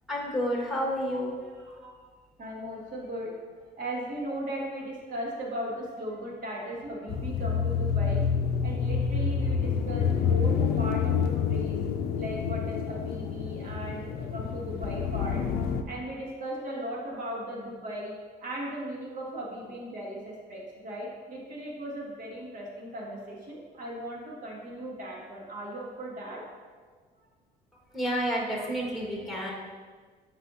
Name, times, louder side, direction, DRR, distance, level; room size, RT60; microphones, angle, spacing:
voice 1, 0.1-1.3 1.6-1.8 10.2-10.3 27.9-29.5, equal, ahead, -4 dB, 1.7 m, -30 dB
voice 2, 2.4-3.3 3.8-8.2 8.6-11.8 12.2-15.4 15.9-18.1 18.4-26.4, right 1 dB, 50° right, -3 dB, 1.9 m, -37 dB
sound 1, 7.1-15.8, left 6 dB, 65° left, 0.5 m, -28 dB
8.1 x 5.7 x 2.7 m, 1.5 s
cardioid pair, 110°, 17 cm